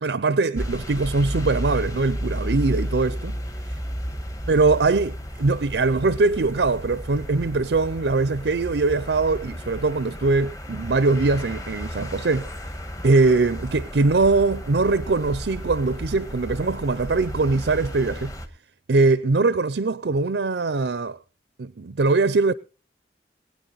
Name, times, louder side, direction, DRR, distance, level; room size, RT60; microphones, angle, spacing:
voice 1, 0.0-3.4 4.5-12.5 13.0-18.3 18.9-21.2 21.6-22.5, right 3 dB, 75° right, 0.6 m, -22 dB
sound 1, 0.5-18.5, equal, 20° left, 1.5 m, -33 dB
21.5 x 9.6 x 4.0 m
head